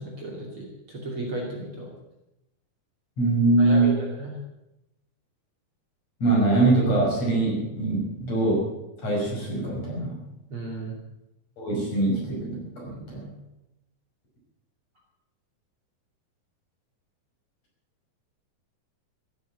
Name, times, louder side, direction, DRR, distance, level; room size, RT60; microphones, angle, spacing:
voice 1, 0.0-1.9 3.6-4.3 10.5-10.9, right 2 dB, 40° right, -2 dB, 3.3 m, -34 dB
voice 2, 3.2-4.0 6.2-8.7 9.0-10.2 11.6-13.3, right 2 dB, 45° left, -3 dB, 7.0 m, -23 dB
16.0 x 9.8 x 8.4 m, 0.91 s
omnidirectional pair, 4.2 m